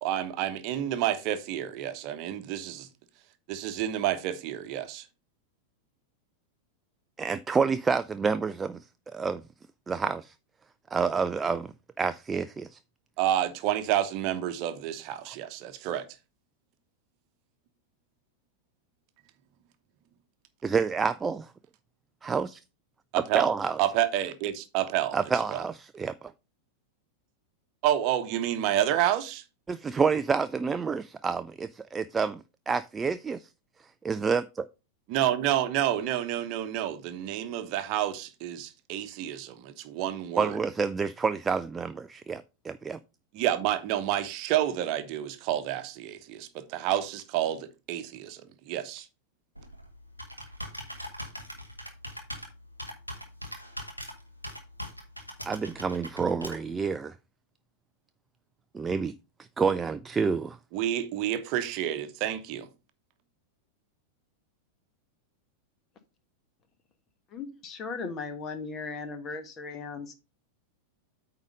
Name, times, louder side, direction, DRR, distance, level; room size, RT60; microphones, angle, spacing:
voice 1, 0.0-2.9 3.5-5.0 13.2-16.0 23.1-23.5 23.8-25.2 25.5-25.6 27.8-29.4 35.1-40.5 43.3-49.1 60.7-62.7, right 12 dB, 40° right, 1.0 m, -29 dB
voice 2, 7.2-9.4 9.9-10.3 10.9-12.8 20.6-21.5 22.2-22.6 23.3-23.8 25.1-26.3 29.7-33.5 34.0-34.7 40.4-43.0 55.4-57.2 58.7-59.1 59.4-60.6, right 5 dB, 15° right, 0.3 m, -28 dB
Computer keyboard, 49.5-56.9, equal, 90° left, 1.7 m, -42 dB
voice 3, 67.3-70.1, left 4 dB, 30° left, 1.4 m, -37 dB
8.9 x 3.9 x 5.1 m
figure-of-eight pair, 90°, 0 cm